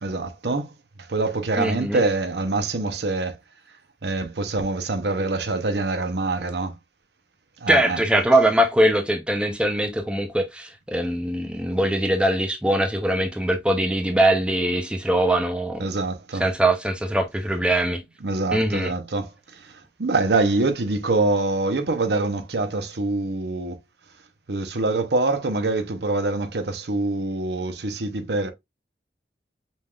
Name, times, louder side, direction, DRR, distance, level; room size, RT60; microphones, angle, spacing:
voice 1, 0.0-0.7 1.0-3.4 4.0-6.8 7.6-8.0 15.8-16.5 18.2-23.8 24.5-28.5, right 2 dB, 70° right, 0.8 m, -25 dB
voice 2, 1.6-2.0 7.7-15.9 16.4-18.0 18.5-18.9, right 1 dB, 5° right, 0.6 m, -22 dB
5.3 x 3.5 x 2.3 m
head